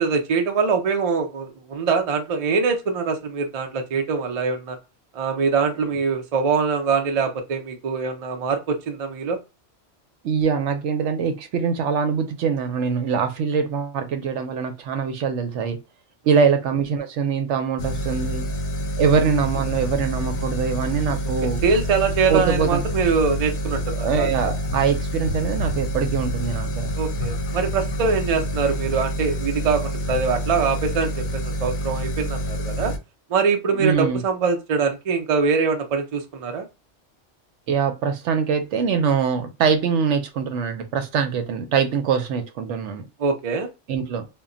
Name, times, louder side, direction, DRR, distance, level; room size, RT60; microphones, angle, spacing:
voice 1, 0.0-4.8 5.1-9.4 16.3-16.4 21.6-24.3 27.0-32.9 33.3-36.7 43.2-43.7, right 5 dB, 50° right, 0.4 m, -23 dB
voice 2, 10.2-15.8 16.3-18.5 19.0-21.6 22.3-22.8 24.0-26.9 33.8-34.2 37.7-43.1 43.9-44.3, right 6 dB, 80° right, 0.9 m, -23 dB
sound 1, 17.8-33.0, equal, 65° left, 0.8 m, -27 dB
2.2 x 2.2 x 3.7 m
omnidirectional pair, 1.2 m